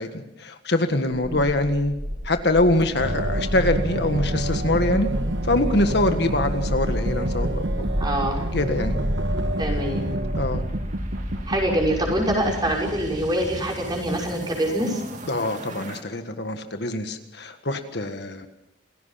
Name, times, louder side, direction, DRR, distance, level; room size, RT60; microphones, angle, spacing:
voice 1, 0.0-1.9 2.2-5.1 5.4-7.9 8.5-9.0 10.4-10.6 15.3-18.5, left 2 dB, 60° left, 7 dB, 1.7 m, -24 dB
sound 1, 1.8-16.0, equal, 40° right, 2.5 m, -32 dB
sound 2, 3.0-12.9, right 1 dB, 65° right, 1.4 m, -28 dB
voice 2, 8.0-8.4 9.6-10.1 11.5-15.0, right 1 dB, 25° right, -1 dB, 6.1 m, -25 dB
28.0 x 17.0 x 5.8 m, 0.78 s
head